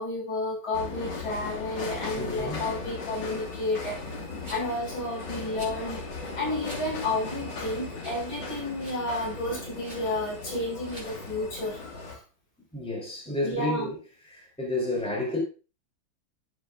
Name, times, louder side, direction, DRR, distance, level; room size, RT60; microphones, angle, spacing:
voice 1, 0.0-4.2 4.5-6.0 6.3-11.8 12.0-12.2 13.4-13.9, left 2 dB, 80° left, 6.3 m, -31 dB
sound 1, 0.7-12.2, left 3 dB, 65° left, 2.7 m, -37 dB
voice 2, 2.2-2.6 12.7-14.0 14.2-15.4, left 1 dB, 5° left, 3.2 m, -31 dB
Rattle, 4.4-4.8 5.5-5.8 6.6-6.8 7.3-7.4 8.0-8.3 8.5-9.0 9.8-10.0 10.8-11.1, right 1 dB, 25° right, 5.3 m, -46 dB
12.0 x 8.2 x 2.5 m
omnidirectional pair, 2.1 m